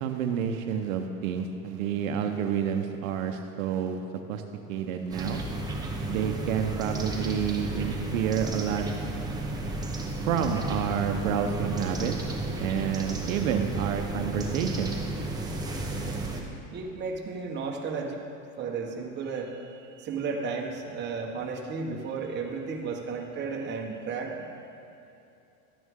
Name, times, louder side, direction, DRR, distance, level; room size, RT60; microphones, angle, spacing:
voice 1, 0.0-4.0 4.3-4.4 4.7-5.4 6.1-8.9 10.3-12.1 12.6-15.0, right 8 dB, 70° right, 5 dB, 0.9 m, -29 dB
sound 1, 5.1-16.4, right 2 dB, 10° right, 0.9 m, -33 dB
voice 2, 16.7-18.2 18.6-24.4, right 4 dB, 25° right, 0 dB, 1.2 m, -34 dB
12.5 x 9.4 x 3.6 m, 2.7 s
supercardioid pair, 135°, 41 cm